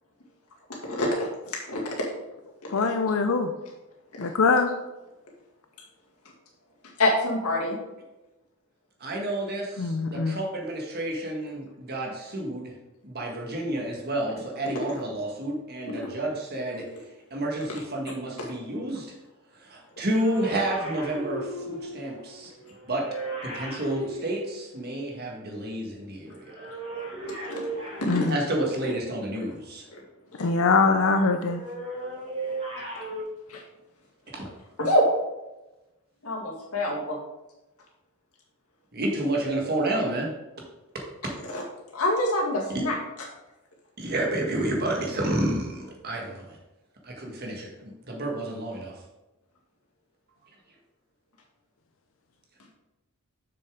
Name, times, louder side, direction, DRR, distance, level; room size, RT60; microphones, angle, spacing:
voice 1, 0.8-1.3 1.7-2.1 2.6-2.9 4.2-4.3 7.0-7.8 18.4-18.5 27.5-27.6 28.0-28.3 29.3-29.4 29.9-30.0 30.4-30.5 33.5-33.6 34.8-35.1 36.2-37.2 41.5-41.6 41.9-43.0, left 1 dB, 90° left, -2 dB, 2.0 m, -26 dB
voice 2, 2.7-3.5 4.2-4.7 9.8-10.4 28.1-28.3 30.4-31.6, left 4 dB, 65° left, 7 dB, 0.5 m, -23 dB
voice 3, 9.0-12.7 13.0-16.9 17.3-19.1 19.6-22.5 22.9-23.0 23.4-26.5 28.3-29.8 34.3-34.5 38.9-40.3 42.7-42.8 44.0-46.6 47.0-49.0, right 1 dB, 45° right, 0 dB, 1.6 m, -30 dB
sound 1, 20.1-25.2 26.4-29.0 31.4-33.2, right 2 dB, 30° right, 2.2 m, -37 dB
6.9 x 6.4 x 3.7 m, 1.0 s
head